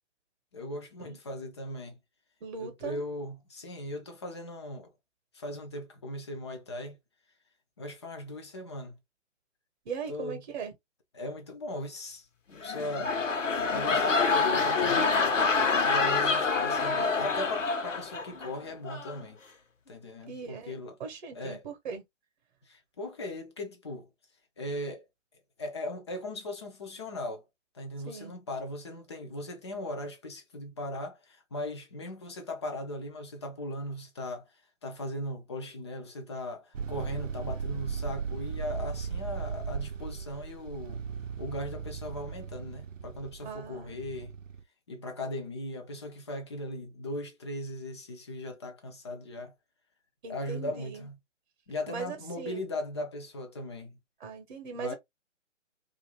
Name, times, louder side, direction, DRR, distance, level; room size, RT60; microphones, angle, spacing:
voice 1, 0.5-2.0 2.6-4.9 5.3-7.0 7.8-9.0 10.1-10.4 11.1-13.2 13.7-15.2 15.8-19.4 19.9-21.0 21.3-21.6 22.7-24.1 24.6-25.1 25.6-27.4 27.7-34.5 34.8-41.0 41.4-44.3 44.9-49.5 50.3-51.2 51.7-54.0 54.7-54.9, left 1 dB, 25° left, 0.5 m, -38 dB
voice 2, 2.4-3.0 9.9-10.7 20.3-20.7 21.0-22.0 28.1-28.3 43.4-44.0 50.2-51.1 51.9-52.7 54.2-54.9, right 6 dB, 40° right, 0.9 m, -39 dB
sound 1, 12.5-18.5 18.9-19.2, left 4 dB, 75° left, 1.0 m, -27 dB
sound 2, 36.7-44.6, right 6 dB, 85° right, 0.6 m, -37 dB
2.6 x 2.5 x 2.9 m
figure-of-eight pair, 140°, 38 cm